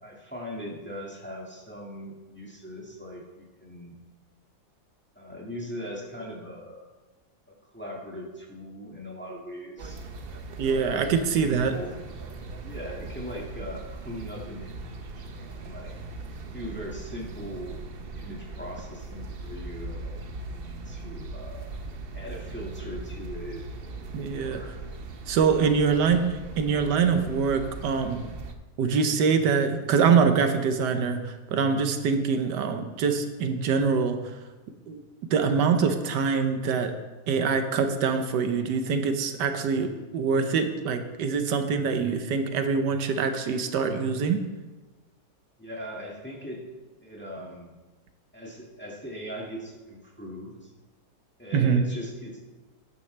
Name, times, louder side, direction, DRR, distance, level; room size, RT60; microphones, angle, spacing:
voice 1, 0.0-4.0 5.2-6.8 7.7-10.0 10.6-11.0 11.3-12.0 12.6-16.0 16.5-17.8 18.1-21.7 22.1-23.7 24.3-24.8 45.6-46.6 47.0-47.7 48.3-50.7 51.4-52.5, equal, 5° left, -3 dB, 1.8 m, -40 dB
sound 1, 9.8-28.5, right 3 dB, 55° right, 0.7 m, -39 dB
voice 2, 10.6-11.8 24.1-24.6 25.3-28.2 28.8-34.2 34.9-35.0 35.3-36.9 37.3-44.4 51.5-51.9, right 5 dB, 80° right, 7 dB, 1.4 m, -24 dB
12.5 x 9.6 x 3.3 m, 1.2 s
omnidirectional pair, 1.8 m